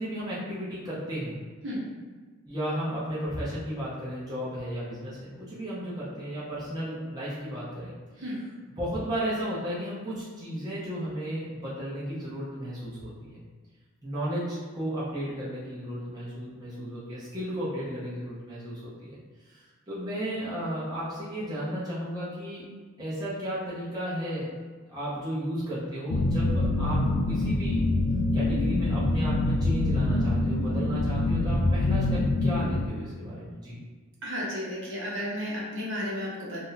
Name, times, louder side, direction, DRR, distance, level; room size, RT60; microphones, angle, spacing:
voice 1, 0.0-1.4 2.5-7.9 8.8-13.4 14.0-19.2 19.5-22.6 23.0-24.5 24.9-27.8 28.3-33.8, equal, 15° right, -10 dB, 0.7 m, -34 dB
sound 1, 26.1-32.9, left 2 dB, 65° left, 0.3 m, -25 dB
voice 2, 34.2-36.6, equal, 55° right, -6 dB, 0.8 m, -33 dB
2.7 x 2.1 x 3.9 m, 1.4 s
head